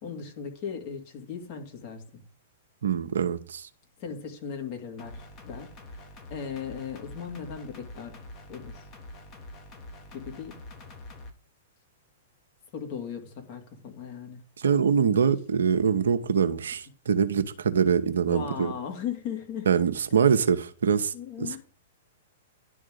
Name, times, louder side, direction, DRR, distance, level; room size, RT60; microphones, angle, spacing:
voice 1, 0.0-2.3 4.0-6.0 6.3-8.2 8.5-8.9 10.1-10.6 12.7-14.4 18.0-19.7 21.1-21.6, left 7 dB, 45° left, 2.3 m, -37 dB
voice 2, 2.8-3.7 14.6-18.7 19.7-21.6, right 7 dB, 70° right, 0.8 m, -24 dB
sound 1, 5.0-11.3, left 1 dB, 30° left, 1.6 m, -45 dB
11.0 x 3.7 x 6.5 m
figure-of-eight pair, 110°, 0 cm